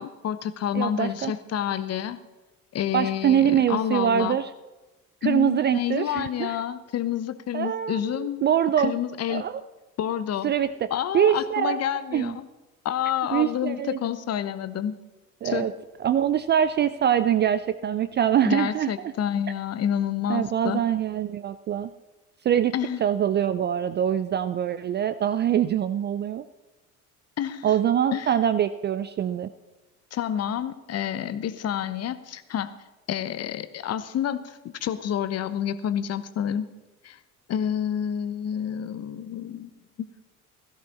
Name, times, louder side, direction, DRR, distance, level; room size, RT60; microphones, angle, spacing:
voice 1, 0.0-2.2 2.7-4.4 5.2-8.5 8.8-9.5 10.0-10.5 10.9-12.5 12.8-15.0 15.4-15.7 18.4-20.8 22.7-23.0 27.4-27.7 28.1-28.3 30.1-32.7 33.1-36.7 37.0-37.2 37.5-39.7 40.0-40.1, left 10 dB, 35° left, 13 dB, 1.0 m, -29 dB
voice 2, 0.7-1.3 2.9-4.5 5.2-6.6 7.5-8.9 9.3-9.5 10.4-11.8 12.1-12.3 13.3-14.0 15.4-15.7 16.0-18.9 20.3-21.9 22.4-22.7 23.0-26.4 27.6-29.5, right 9 dB, 25° right, 13 dB, 0.4 m, -24 dB
16.5 x 14.0 x 4.2 m, 1.1 s
figure-of-eight pair, 60°, 44 cm